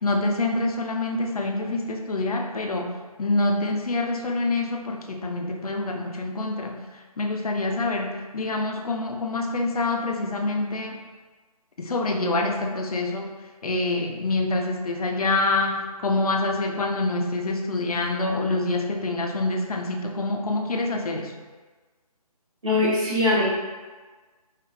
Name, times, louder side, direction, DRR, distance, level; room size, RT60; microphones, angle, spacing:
voice 1, 0.0-6.9 7.2-11.0 11.8-13.3 13.6-21.3, left 2 dB, 65° left, 3 dB, 0.6 m, -26 dB
voice 2, 22.6-23.4, left 2 dB, 55° right, -12 dB, 1.4 m, -21 dB
4.9 x 2.4 x 2.8 m, 1.3 s
figure-of-eight pair, 165°, 20 cm